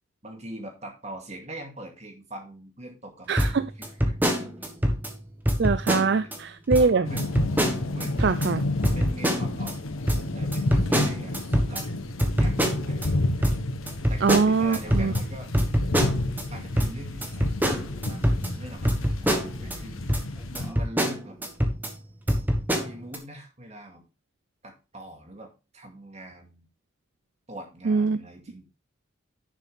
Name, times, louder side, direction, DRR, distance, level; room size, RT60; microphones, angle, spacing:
voice 1, 0.2-4.9 6.8-7.3 7.9-8.4 8.9-9.8 10.3-11.9 12.4-13.3 14.1-15.5 16.5-17.5 17.8-20.1 20.5-21.4 22.8-24.0 24.6-26.7 27.5-28.6, right 1 dB, 30° right, 2.3 m, -43 dB
voice 2, 3.3-3.7 5.6-7.1 8.2-8.6 14.2-15.1 27.9-28.2, right 4 dB, 55° right, 0.4 m, -23 dB
sound 1, 3.4-5.1 5.4-6.4 6.7-6.9 7.2-8.5 8.8-9.7 10.1-13.1 13.4-16.4 16.8-19.8 20.1-20.2 20.5-21.9 22.3-23.2, equal, 10° right, 1.2 m, -25 dB
sound 2, 7.0-20.7, left 2 dB, 85° left, 1.1 m, -30 dB
10.5 x 6.5 x 3.6 m
head